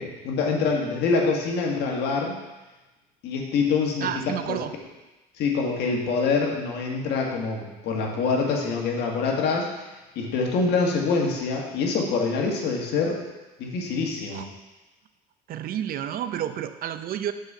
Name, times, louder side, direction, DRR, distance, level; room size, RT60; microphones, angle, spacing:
voice 1, 0.0-2.4 3.2-4.1 4.5-4.6 5.4-9.7 10.1-13.2 13.6-14.4, left 4 dB, 75° left, 0 dB, 1.7 m, -25 dB
voice 2, 4.0-4.7 14.3-14.5 15.5-17.3, right 10 dB, 60° right, 11 dB, 0.6 m, -30 dB
6.5 x 4.9 x 6.7 m, 1.1 s
cardioid pair, 110°, 17 cm